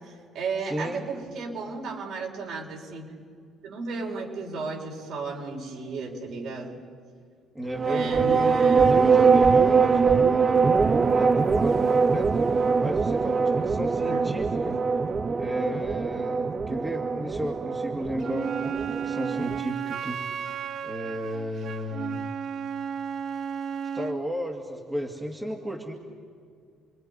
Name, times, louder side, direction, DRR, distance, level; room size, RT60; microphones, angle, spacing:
voice 1, 0.0-3.1 3.6-6.8 7.8-9.3 14.0-14.2, right 3 dB, 65° right, -1 dB, 5.3 m, -34 dB
voice 2, 0.6-1.1 7.5-8.3 8.8-10.3 10.9-12.3 12.8-14.8 15.3-20.2 20.8-22.2 23.9-25.9, equal, 10° right, 0 dB, 2.2 m, -34 dB
sound 1, 7.7-19.6, right 5 dB, 25° right, 0.5 m, -22 dB
Wind instrument woodwind instrument, 18.2-24.2, right 8 dB, 50° right, 0.9 m, -33 dB
29.5 x 22.0 x 5.4 m, 2.2 s
cardioid pair, 130°, 0 cm